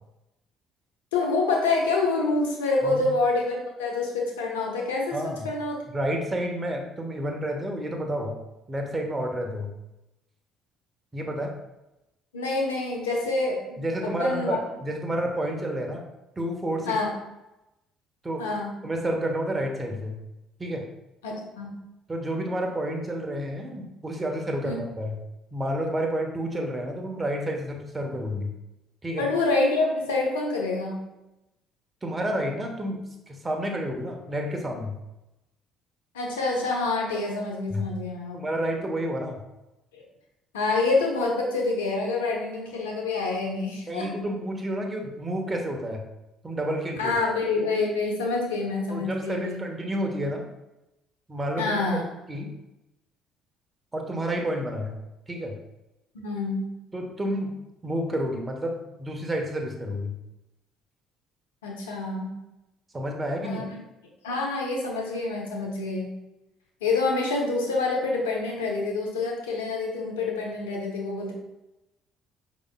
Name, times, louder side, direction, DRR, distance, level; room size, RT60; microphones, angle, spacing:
voice 1, 1.1-5.2 5.4-5.8 12.3-14.6 16.8-17.1 18.4-18.7 21.2-21.7 24.6-24.8 29.2-31.0 36.1-38.4 39.9-40.0 40.5-44.1 47.0-49.6 51.6-52.0 56.1-56.7 61.6-62.3 63.4-63.7 64.2-66.1 66.8-71.3, left 3 dB, 85° left, 0 dB, 0.8 m, -27 dB
voice 2, 5.1-5.5 5.9-8.4 8.7-9.7 11.1-11.5 13.8-16.0 16.4-17.0 18.2-18.4 18.8-20.2 20.6-20.8 22.1-25.2 25.5-28.5 29.0-29.3 32.0-35.0 37.7-37.9 38.3-39.4 43.9-46.0 46.4-47.1 48.9-50.4 51.3-51.7 52.3-52.5 53.9-54.9 55.3-55.5 56.9-57.5 57.8-60.1 62.9-63.7, equal, 25° right, 2 dB, 1.0 m, -30 dB
5.2 x 4.1 x 2.3 m, 0.94 s
hypercardioid pair, 55°, 0 cm